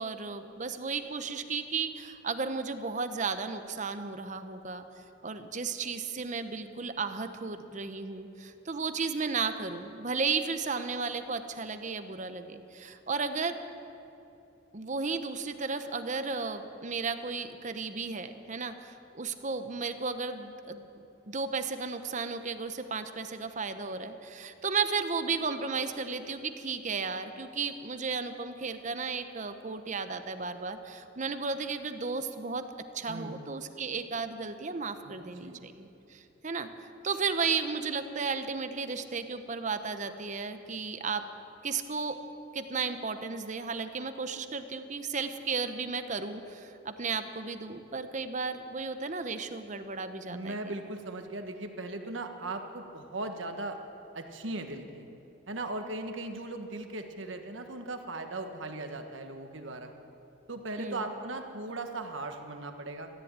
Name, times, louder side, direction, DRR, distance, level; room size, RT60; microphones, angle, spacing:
voice 1, 0.0-4.8 5.2-13.6 14.7-20.8 21.3-32.7 32.9-41.3 41.6-42.2 42.5-50.7 60.8-61.1, right 4 dB, 40° right, 9 dB, 0.8 m, -34 dB
voice 2, 33.1-33.5 35.0-35.7 50.3-53.8 54.1-55.1 55.5-59.9 60.5-63.1, right 2 dB, 85° right, 5 dB, 1.4 m, -38 dB
14.5 x 10.5 x 8.8 m, 2.9 s
head